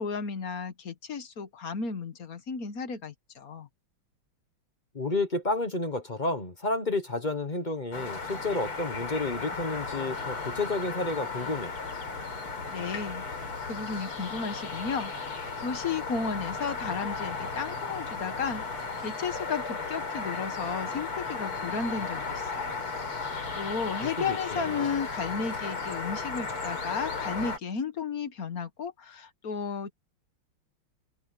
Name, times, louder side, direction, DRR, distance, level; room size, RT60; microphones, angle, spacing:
voice 1, 0.0-3.7 12.7-13.2 13.7-22.8 23.5-29.9, left 5 dB, 45° left, 1.7 m, -34 dB
voice 2, 4.9-11.7 24.3-24.9, left 2 dB, 30° left, 1.0 m, -31 dB
sound 1, 7.9-27.6, left 4 dB, 85° left, 5.2 m, -35 dB
omnidirectional pair, 2.3 m